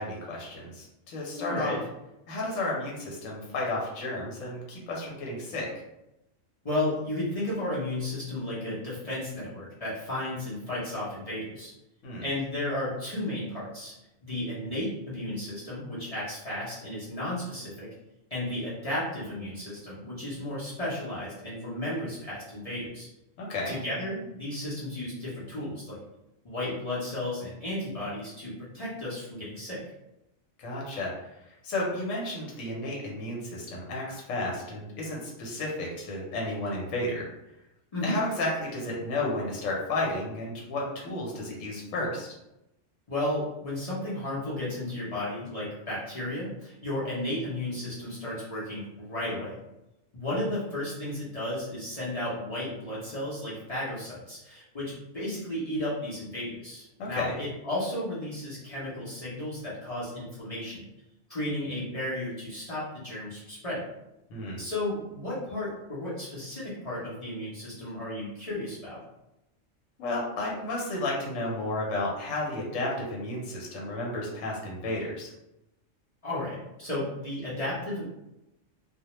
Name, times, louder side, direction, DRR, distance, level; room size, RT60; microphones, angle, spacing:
voice 1, 0.0-1.7 2.3-5.7 12.0-12.2 23.4-23.8 30.6-37.3 38.0-42.3 57.0-57.4 64.3-64.6 70.0-75.3, left 2 dB, 80° left, -3 dB, 1.0 m, -32 dB
voice 2, 1.3-1.8 6.6-11.7 12.2-13.9 14.2-17.9 18.3-23.1 23.7-26.0 26.4-29.8 37.9-38.2 43.1-49.6 50.1-60.9 61.3-63.9 64.6-69.0 76.2-78.0, left 1 dB, 40° left, -9 dB, 0.6 m, -33 dB
2.3 x 2.1 x 2.9 m, 0.90 s
omnidirectional pair, 1.3 m